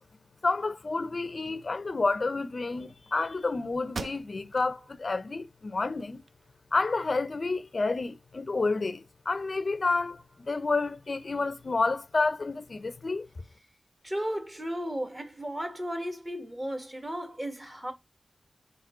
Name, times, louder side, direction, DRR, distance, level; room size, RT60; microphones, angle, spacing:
voice 1, 0.4-6.2 6.7-13.3, left 3 dB, 50° left, 0.4 m, -29 dB
sound 1, 3.9-4.7 5.2-5.3 5.8-6.7, right 4 dB, 75° right, 0.4 m, -41 dB
voice 2, 14.0-17.9, equal, 20° right, 1.1 m, -34 dB
3.6 x 3.0 x 4.6 m
wide cardioid pair, 90°, 0 cm